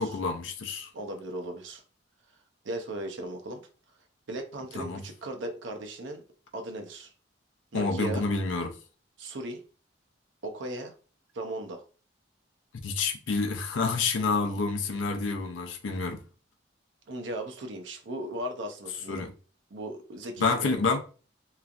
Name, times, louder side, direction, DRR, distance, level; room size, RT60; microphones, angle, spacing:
voice 1, 0.0-0.9 4.8-5.0 7.7-8.8 12.8-16.2 19.1-19.3 20.4-21.0, left 4 dB, 80° left, 0.5 m, -28 dB
voice 2, 0.9-1.8 2.6-3.7 4.3-6.2 6.5-7.1 7.7-8.3 9.2-9.6 10.4-10.9 11.3-11.8 17.1-19.3 19.7-20.8, right 1 dB, 70° right, 0.6 m, -37 dB
3.0 x 2.4 x 2.4 m
head